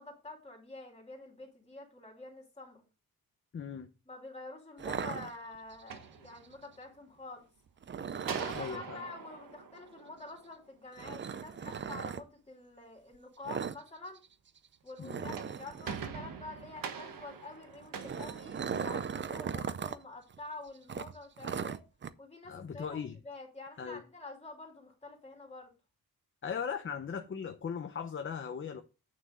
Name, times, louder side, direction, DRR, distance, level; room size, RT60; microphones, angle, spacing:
voice 1, 0.0-2.8 4.1-7.5 8.3-14.2 14.8-21.8 22.2-25.7, left 3 dB, 15° left, 3.0 m, -47 dB
voice 2, 3.5-3.9 8.5-9.0 15.0-15.4 22.5-23.2 23.8-24.0 26.4-28.8, left 7 dB, 35° left, 0.7 m, -38 dB
sound 1, 4.8-5.8 7.8-8.8 11.0-12.2 13.4-13.8 14.1-14.3 14.6-14.7 15.0-16.2 17.7-20.0 20.3-20.4 20.9-22.1, right 7 dB, 30° right, 0.5 m, -38 dB
sound 2, 5.7-6.9 8.2-10.7 15.1-19.2, right 6 dB, 65° right, 1.4 m, -44 dB
8.9 x 6.7 x 3.7 m
wide cardioid pair, 180°, 37 cm